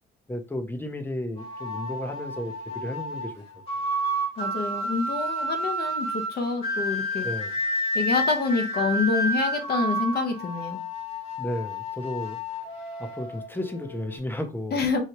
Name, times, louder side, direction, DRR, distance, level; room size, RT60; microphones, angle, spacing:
voice 1, 0.3-3.4 7.2-7.5 11.4-12.6 13.0-14.8, left 1 dB, 10° left, 0.8 m, -33 dB
sound 1, 1.4-14.2, equal, 30° left, 1.6 m, -30 dB
voice 2, 4.4-7.3 7.9-10.8 14.7-15.0, left 4 dB, 55° left, 1.1 m, -27 dB
4.5 x 2.3 x 3.0 m
cardioid pair, 90°, 20 cm